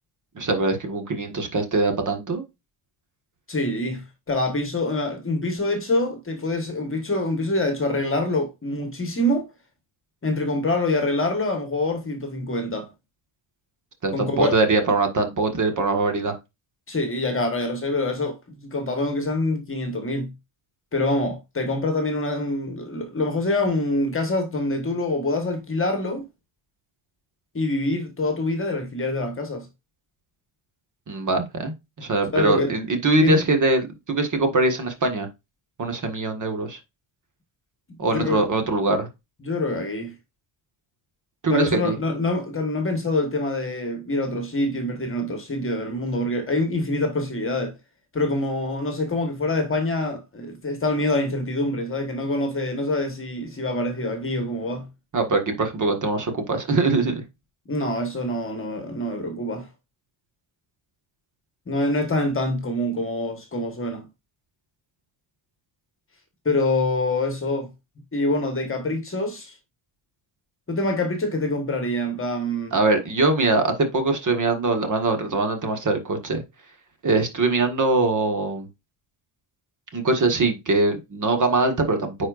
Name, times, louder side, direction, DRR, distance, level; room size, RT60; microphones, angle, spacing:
voice 1, 0.3-2.4 14.0-16.4 31.1-35.3 35.8-36.8 38.0-39.1 41.4-41.9 55.1-57.2 72.7-76.4 77.0-78.7 79.9-82.3, right 3 dB, 35° right, 1.6 m, -22 dB
voice 2, 3.5-9.5 10.2-12.9 14.1-14.6 16.9-20.3 20.9-26.2 27.5-29.7 32.3-32.7 33.2-33.4 38.0-38.4 39.4-40.1 41.5-47.7 48.1-54.9 57.7-59.7 61.7-64.1 66.4-67.7 68.1-69.5 70.7-72.8, left 2 dB, 25° left, 1.4 m, -25 dB
9.8 x 4.4 x 2.5 m
wide cardioid pair, 180°, 49 cm